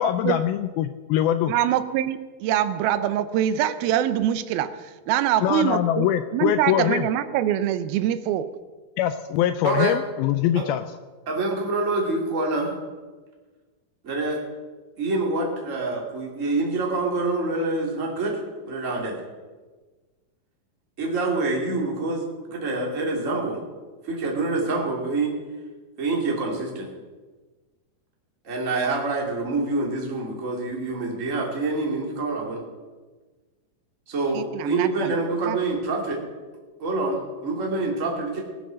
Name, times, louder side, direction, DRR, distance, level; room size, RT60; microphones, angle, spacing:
voice 1, 0.0-1.5 5.4-7.1 9.0-10.8, left 11 dB, 80° left, 10 dB, 2.4 m, -23 dB
voice 2, 1.5-6.1 6.3-8.5 34.3-35.2 35.5-35.6, right 11 dB, 80° right, 12 dB, 2.5 m, -24 dB
voice 3, 11.3-12.7 14.0-14.4 15.0-18.4 18.6-19.2 21.0-23.6 24.0-25.4 26.0-26.9 28.4-32.6 34.1-36.2 36.8-38.4, right 3 dB, 25° right, -2 dB, 2.3 m, -26 dB
20.0 x 7.6 x 6.4 m, 1.3 s
omnidirectional pair, 4.4 m